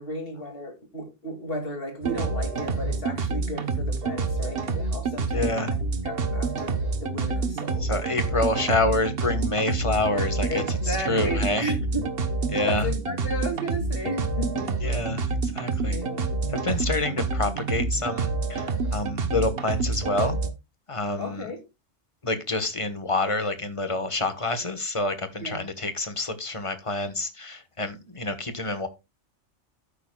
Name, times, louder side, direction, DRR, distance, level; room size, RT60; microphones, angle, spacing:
voice 1, 0.0-5.8 6.0-7.9 10.5-12.1 12.6-15.0 15.9-16.4 21.1-21.6 25.4-25.7, equal, 50° left, 2.8 m, -34 dB
sound 1, 2.0-20.5, right 3 dB, 55° right, 1.2 m, -28 dB
voice 2, 5.3-5.7 7.8-11.7 12.5-12.9 14.8-16.0 16.5-20.4 20.9-21.5 22.2-28.9, left 2 dB, 25° left, 1.2 m, -28 dB
12.0 x 9.3 x 2.3 m
omnidirectional pair, 1.2 m